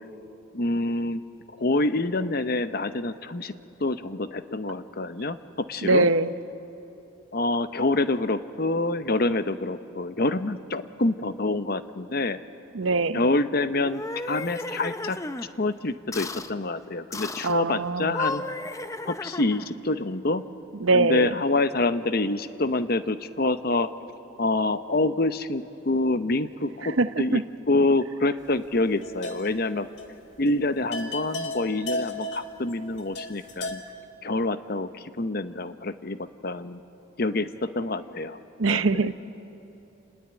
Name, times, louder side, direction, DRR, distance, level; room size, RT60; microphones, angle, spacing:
voice 1, 0.5-1.2 1.6-3.5 3.8-6.1 7.3-12.4 13.1-15.2 15.6-18.4 19.1-20.4 20.9-23.9 24.4-27.4 27.7-29.9 30.4-33.8 34.2-36.8 37.2-38.4 38.7-39.1, left 2 dB, 50° left, 11 dB, 0.8 m, -26 dB
voice 2, 5.8-6.3 12.7-13.3 17.4-18.2 20.7-21.4 26.8-27.4 38.6-39.1, right 3 dB, 80° right, 13 dB, 0.8 m, -23 dB
sound 1, 13.8-15.5 16.1-16.5 17.1-17.6 18.0-19.7, left 2 dB, 15° left, 0.6 m, -34 dB
sound 2, 28.7-29.7 30.0-30.1 30.5-30.6 30.9-33.9, left 1 dB, 65° left, 2.0 m, -35 dB
27.5 x 20.5 x 9.0 m, 3.0 s
head